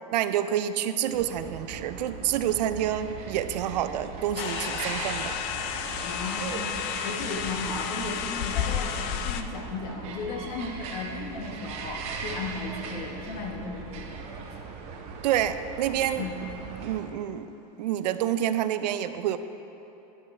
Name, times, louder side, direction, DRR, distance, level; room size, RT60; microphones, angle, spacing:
voice 1, 0.1-5.4 15.2-16.3 16.8-17.5 17.8-19.4, right 11 dB, 85° right, 11 dB, 0.5 m, -28 dB
sound 1, 1.1-17.0, right 4 dB, 30° right, 0.8 m, -39 dB
sound 2, 4.4-9.4, left 8 dB, 30° left, 0.4 m, -31 dB
voice 2, 6.0-14.2 16.2-16.4, left 3 dB, 55° left, 3 dB, 1.3 m, -35 dB
11.5 x 10.5 x 3.3 m, 3.0 s
supercardioid pair, 170°, 21 cm